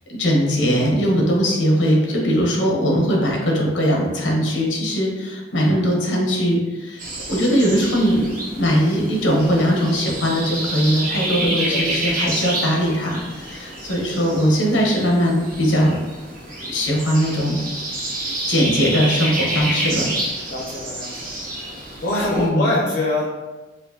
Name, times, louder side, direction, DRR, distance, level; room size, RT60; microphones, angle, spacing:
voice 1, 0.1-16.0 16.7-17.6 18.5-20.1 22.4-22.7, equal, 90° left, -1 dB, 0.9 m, -20 dB
voice 2, 5.5-6.2 11.6-12.1 14.1-14.3 19.8-20.2 20.5-21.3 22.0-23.3, left 2 dB, 65° left, -5 dB, 0.6 m, -26 dB
sound 1, 7.0-22.5, right 1 dB, 50° right, 0.9 m, -29 dB
4.4 x 2.6 x 2.7 m, 1.2 s
head